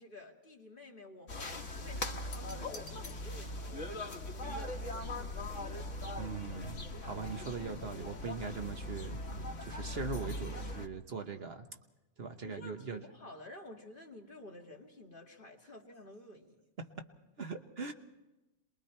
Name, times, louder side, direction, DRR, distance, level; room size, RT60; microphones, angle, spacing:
voice 1, 0.0-5.6 12.4-16.6, left 1 dB, 45° left, 1 dB, 2.2 m, -52 dB
sound 1, 1.3-10.9, left 1 dB, 85° left, 1.6 m, -40 dB
voice 2, 6.2-9.2 9.6-11.7 12.2-13.0 16.8-16.9 17.4-17.9, right 4 dB, 55° right, 6 dB, 1.3 m, -41 dB
27.5 x 21.5 x 4.4 m, 1.0 s
omnidirectional pair, 1.3 m